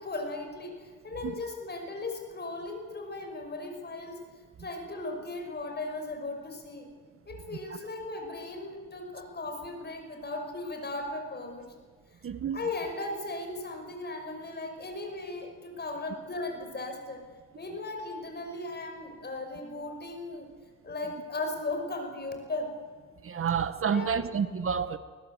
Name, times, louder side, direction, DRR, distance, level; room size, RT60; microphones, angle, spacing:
voice 1, 0.0-4.2 4.6-6.9 7.3-11.7 12.1-12.2 12.5-17.2 17.6-20.5 20.8-22.7 23.8-24.3, left 2 dB, 35° left, 5.8 m, -37 dB
voice 2, 12.2-12.6 23.2-25.0, right 7 dB, 45° right, 1.3 m, -29 dB
21.5 x 20.0 x 8.1 m
cardioid pair, 90°, 30 cm